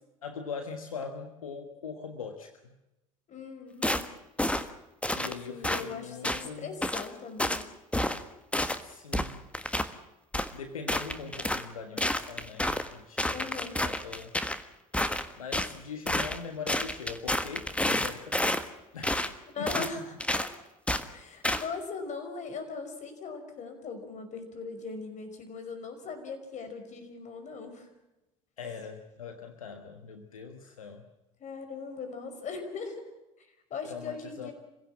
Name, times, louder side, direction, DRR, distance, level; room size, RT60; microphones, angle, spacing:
voice 1, 0.2-2.7 5.1-6.8 8.8-9.4 10.5-14.4 15.4-18.6 18.9-19.2 19.6-19.7 28.6-31.1 33.8-34.5, left 5 dB, 85° left, 6 dB, 1.5 m, -41 dB
voice 2, 3.3-4.1 5.5-7.6 13.3-13.9 19.5-20.5 21.1-27.9 31.4-33.0 33.4-34.5, left 4 dB, 45° left, 7 dB, 5.4 m, -39 dB
sound 1, 3.8-4.1 4.4-4.7 5.0-5.3 5.6-5.8 6.2-6.5 6.8-7.1 7.4-7.6 7.9-8.2 8.5-8.8 9.1-9.9 10.3-10.5 10.9-11.7 12.0-12.9 13.2-14.6 14.9-15.7 16.1-16.4 16.7-18.6 19.0-19.3 19.7-19.9 20.2-20.5 20.9-21.0 21.4-21.6, left 1 dB, 5° left, 1.5 m, -29 dB
27.0 x 16.5 x 7.4 m, 0.95 s
hypercardioid pair, 70°, 17 cm